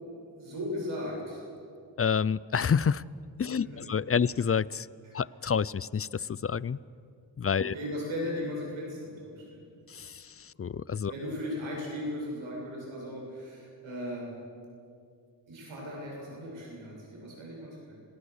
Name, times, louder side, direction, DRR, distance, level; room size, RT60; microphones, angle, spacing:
voice 1, 0.0-1.4 3.6-3.7 7.6-9.6 11.1-14.3 15.5-17.9, left 1 dB, 85° right, -3 dB, 7.8 m, -37 dB
voice 2, 2.0-3.0 3.4-4.9 5.1-6.8 7.4-7.7 9.9-11.1, left 7 dB, 30° left, 21 dB, 0.5 m, -28 dB
26.0 x 18.0 x 6.5 m, 2.4 s
cardioid pair, 45°, 46 cm